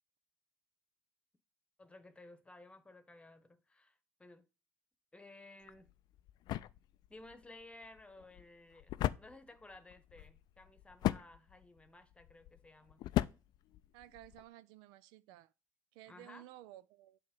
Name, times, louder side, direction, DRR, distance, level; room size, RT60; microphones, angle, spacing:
voice 1, 1.8-4.4 5.1-5.9 7.1-8.9 9.2-13.0 16.1-16.4, left 2 dB, 15° left, 1.1 m, -56 dB
sound 1, 5.6-14.5, left 14 dB, 60° left, 0.4 m, -40 dB
voice 2, 13.9-15.5 15.9-17.2, right 14 dB, 75° right, 0.4 m, -55 dB
7.8 x 3.0 x 5.4 m
hypercardioid pair, 70°, 8 cm